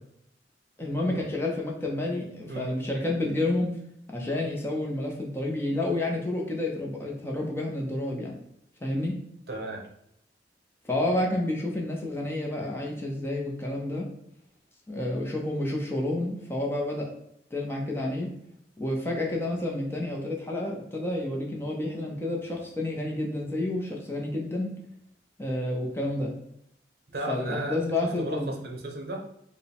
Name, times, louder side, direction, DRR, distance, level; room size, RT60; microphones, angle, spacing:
voice 1, 0.8-3.7 4.1-8.4 8.8-9.2 10.9-14.1 14.9-17.1 17.5-18.3 18.8-24.7 25.4-26.3 27.3-28.5, left 1 dB, 15° left, -1 dB, 0.6 m, -30 dB
voice 2, 2.5-2.8 9.5-9.8 27.1-29.3, right 2 dB, 60° right, 2 dB, 0.6 m, -35 dB
4.6 x 2.1 x 3.4 m, 0.76 s
head